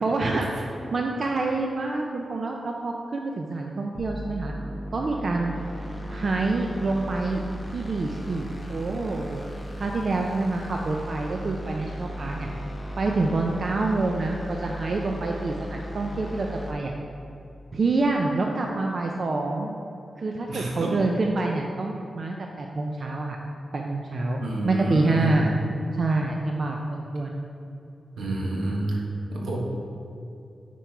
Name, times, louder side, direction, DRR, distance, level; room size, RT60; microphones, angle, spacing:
voice 1, 0.0-4.5 4.9-5.5 6.1-7.4 7.7-9.4 9.8-12.5 13.0-16.9 17.7-19.8 20.2-23.4 23.7-25.5 26.0-27.4, right 3 dB, 50° right, 1 dB, 0.5 m, -27 dB
sound 1, 4.0-16.7, equal, 10° left, 1.1 m, -36 dB
voice 2, 20.5-21.0 24.4-25.3 28.2-29.0 29.3-29.6, right 1 dB, 85° right, -2 dB, 1.3 m, -28 dB
8.1 x 4.5 x 4.6 m, 2.7 s
wide cardioid pair, 100°, 0 cm